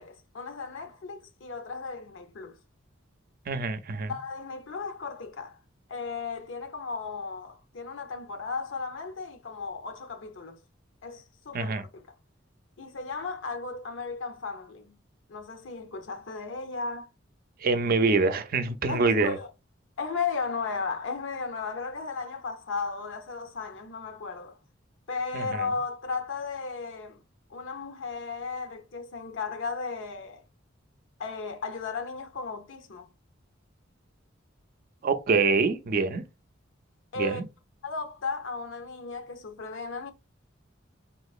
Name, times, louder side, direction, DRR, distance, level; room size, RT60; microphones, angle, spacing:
voice 1, 0.0-2.6 4.0-5.6 5.9-10.6 11.0-12.1 12.8-15.0 15.3-17.1 18.9-19.5 20.0-24.6 25.1-27.2 27.5-30.4 31.2-33.1 37.1-37.4 37.8-40.1, left 4 dB, 70° left, 0.6 m, -35 dB
voice 2, 3.5-4.1 11.5-11.8 17.6-19.4 25.3-25.6 35.0-36.2 37.2-37.4, right 4 dB, 45° right, 0.4 m, -25 dB
3.7 x 2.8 x 2.4 m
head